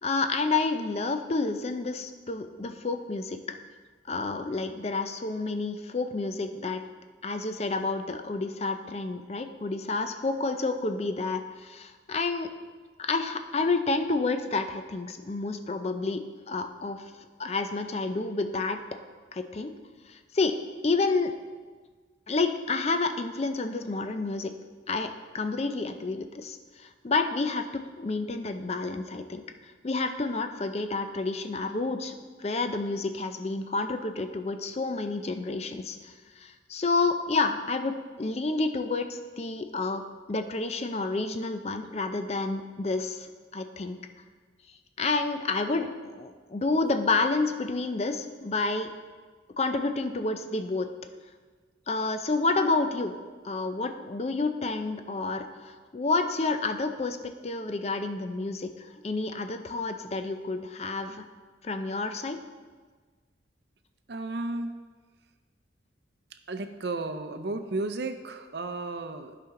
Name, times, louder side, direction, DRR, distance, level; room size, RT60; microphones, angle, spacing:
voice 1, 0.0-3.6 4.1-6.8 7.2-12.5 13.0-17.0 17.4-18.8 19.3-19.7 20.1-20.6 20.8-21.3 22.3-24.5 24.9-29.4 29.8-40.0 40.3-44.0 45.0-48.9 49.6-50.9 51.9-53.1 53.4-57.2 57.4-61.2 61.6-62.4, left 3 dB, 35° left, 8 dB, 0.5 m, -29 dB
voice 2, 64.1-64.7 66.5-69.4, right 2 dB, 60° right, 8 dB, 0.6 m, -33 dB
10.5 x 5.9 x 3.7 m, 1.4 s
head